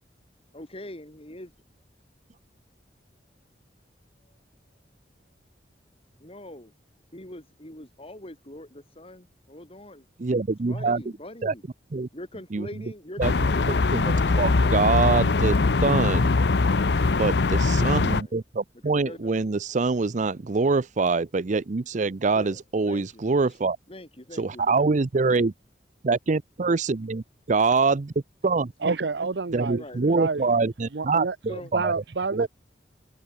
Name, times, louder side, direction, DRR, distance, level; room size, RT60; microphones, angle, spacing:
voice 1, 0.5-1.5 4.2-4.4 6.2-6.7 7.1-10.1 10.7-11.6 12.1-15.3 18.8-19.3 22.3-23.2 23.9-24.9 29.8-30.4 31.5-31.7, left 1 dB, 35° left, 6.0 m, -43 dB
voice 2, 10.2-11.0 11.4-11.5 11.9-12.1 12.5-12.7 13.2-13.5 13.9-16.3 17.2-23.8 24.4-25.5 26.0-28.1 28.4-28.7 29.5-31.9 32.3-32.5, right 4 dB, 45° right, 0.6 m, -25 dB
sound 1, 13.2-18.2, left 3 dB, 70° left, 0.7 m, -22 dB
voice 3, 28.8-29.8 30.1-30.4 30.9-31.3 31.7-32.5, right 4 dB, 75° right, 0.8 m, -28 dB
open air
head